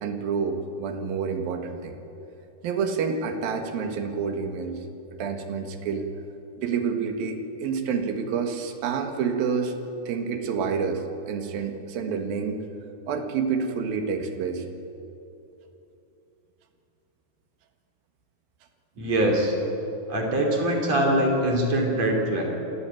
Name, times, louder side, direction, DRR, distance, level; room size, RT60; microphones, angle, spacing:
voice 1, 0.0-2.0 2.6-4.8 5.2-6.1 6.6-9.7 10.1-12.6 13.1-14.6 20.4-20.5, right 5 dB, 65° right, 5 dB, 3.3 m, -28 dB
voice 2, 19.0-19.5 20.1-22.4, right 1 dB, 45° right, 0 dB, 4.2 m, -23 dB
27.0 x 14.5 x 9.3 m, 2.9 s
omnidirectional pair, 4.7 m